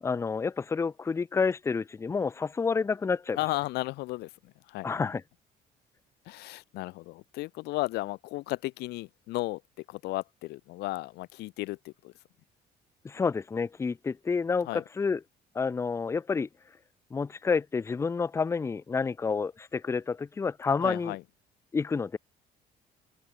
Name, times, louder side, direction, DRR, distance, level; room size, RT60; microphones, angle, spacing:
voice 1, 0.0-3.4 4.8-5.2 13.0-15.2 15.5-16.5 17.1-21.2 21.7-22.2, left 5 dB, 15° left, 0.4 m, -29 dB
voice 2, 3.4-4.3 4.7-5.1 6.3-9.6 9.9-12.1 14.7-14.8 20.8-21.2, left 19 dB, 80° left, 0.5 m, -34 dB
open air
cardioid pair, 110°, 17 cm